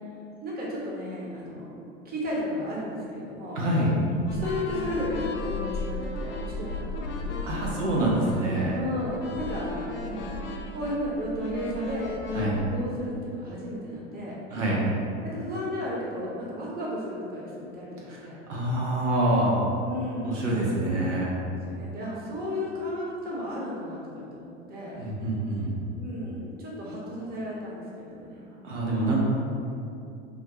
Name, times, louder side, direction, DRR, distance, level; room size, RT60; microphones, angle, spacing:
voice 1, 0.4-1.8 2.0-3.6 4.3-7.9 8.7-10.2 10.7-12.2 12.6-14.4 15.2-18.4 19.8-20.5 21.6-25.0 26.0-28.5, left 1 dB, 25° right, -5 dB, 0.9 m, -34 dB
voice 2, 3.6-3.9 7.4-8.7 12.3-12.6 14.5-14.8 18.0-19.6 20.2-21.3 25.0-25.7 28.6-29.2, right 1 dB, 90° right, -4 dB, 0.7 m, -26 dB
sound 1, 4.3-12.5, left 2 dB, 35° left, 0.4 m, -35 dB
3.5 x 2.2 x 2.9 m, 2.6 s
hypercardioid pair, 85°, 35 cm